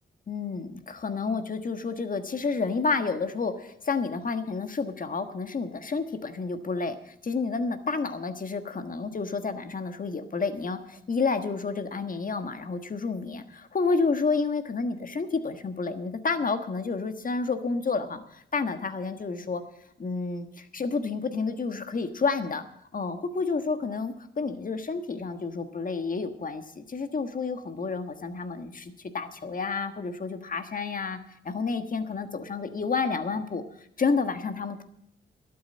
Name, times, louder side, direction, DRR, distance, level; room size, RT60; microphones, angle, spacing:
voice 1, 0.3-19.6 20.0-22.6 22.9-31.2 31.4-33.6 34.0-34.8, left 4 dB, 40° left, 8 dB, 1.4 m, -30 dB
12.0 x 8.8 x 8.2 m, 0.72 s
cardioid pair, 90°, 21 cm